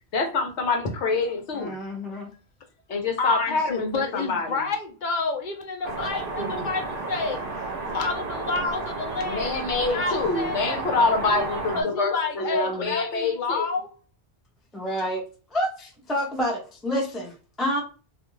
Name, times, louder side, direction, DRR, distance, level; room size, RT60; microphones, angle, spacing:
voice 1, 0.1-1.7 2.9-4.7 9.2-13.7, left 3 dB, 75° left, 3 dB, 1.0 m, -26 dB
voice 2, 1.5-2.3 12.7-12.9 14.7-15.3 15.5-17.8, equal, ahead, 1 dB, 0.4 m, -29 dB
voice 3, 3.2-9.6 9.9-13.9, left 4 dB, 50° left, 3 dB, 0.7 m, -30 dB
sound 1, 5.8-11.8, right 3 dB, 55° right, 0.7 m, -32 dB
2.4 x 2.3 x 3.0 m, 0.36 s
omnidirectional pair, 1.2 m